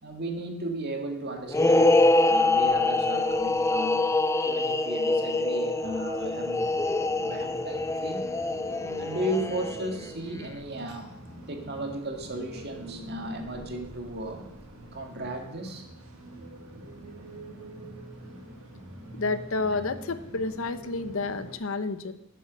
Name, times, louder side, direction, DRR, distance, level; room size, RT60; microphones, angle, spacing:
voice 1, 0.0-4.0 4.5-6.7 7.2-8.2 9.0-14.5 14.9-15.9 19.7-19.8, right 1 dB, 50° right, 3 dB, 1.9 m, -35 dB
sound 1, 1.5-10.1, left 2 dB, 15° left, 0.4 m, -25 dB
sound 2, 5.8-21.6, right 1 dB, 85° right, 2.2 m, -44 dB
voice 2, 19.1-22.1, left 3 dB, 70° left, 11 dB, 0.8 m, -30 dB
11.0 x 7.7 x 6.3 m, 0.83 s
head